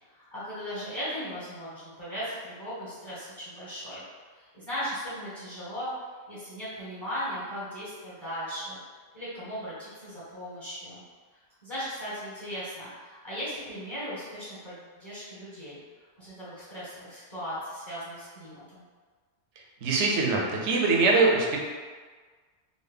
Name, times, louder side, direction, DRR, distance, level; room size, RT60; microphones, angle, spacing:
voice 1, 0.2-4.0 4.3-5.9 6.3-8.8 9.1-11.0 11.6-15.8 16.2-18.8, equal, 25° left, -12 dB, 1.3 m, -37 dB
voice 2, 19.8-21.6, right 3 dB, 80° right, -1 dB, 1.0 m, -23 dB
4.0 x 2.1 x 3.5 m, 1.5 s
omnidirectional pair, 1.2 m